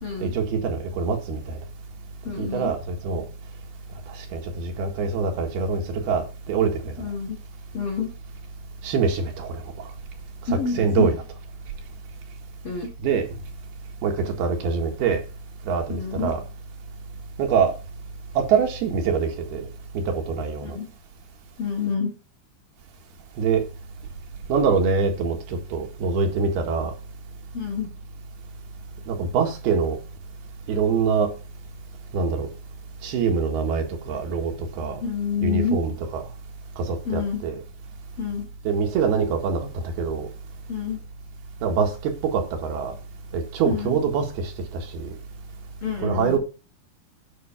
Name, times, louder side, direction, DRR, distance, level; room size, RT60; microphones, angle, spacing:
voice 1, 0.2-1.6 2.4-3.3 4.3-6.9 8.8-9.9 10.5-11.2 13.0-13.3 14.0-15.2 15.6-16.4 17.4-17.8 18.4-19.7 20.0-20.8 23.4-23.7 24.5-26.9 29.1-30.0 30.7-31.3 32.1-32.5 33.0-35.0 35.4-36.2 36.8-37.6 38.7-40.3 41.6-43.0 43.3-45.2 46.0-46.4, right 5 dB, 75° right, 3.6 m, -24 dB
voice 2, 2.2-2.7 7.0-7.4 7.7-8.1 10.5-11.1 12.6-12.9 15.9-16.3 20.6-20.9 21.6-22.1 27.5-27.9 35.0-35.8 37.1-37.4 38.2-38.5 40.7-41.0 43.7-43.9 45.8-46.4, left 5 dB, 50° left, 2.0 m, -27 dB
9.4 x 6.3 x 5.9 m
omnidirectional pair, 4.6 m